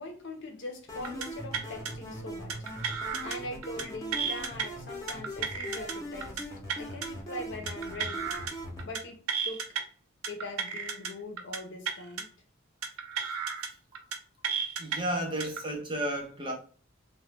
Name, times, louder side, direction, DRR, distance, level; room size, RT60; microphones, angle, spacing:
voice 1, 0.0-2.6 3.2-6.5 6.8-8.3 8.8-9.2 9.4-9.6 10.3-12.3, left 2 dB, 55° left, 0.6 m, -41 dB
sound 1, 0.9-8.9, equal, 15° left, 0.6 m, -40 dB
sound 2, 1.0-1.3 1.5-1.9 2.5-3.4 3.6-3.8 4.1-4.6 5.1-5.9 6.2-6.4 6.7-7.1 7.7-8.5 8.8-9.0 9.3-9.8 10.2-11.1 11.4-11.6 11.8-12.2 12.8-13.7 13.9-14.2 14.4-15.0 15.4-15.6, right 6 dB, 85° right, 0.6 m, -33 dB
voice 2, 14.8-16.5, right 1 dB, 25° right, 0.7 m, -32 dB
2.8 x 2.2 x 3.3 m
head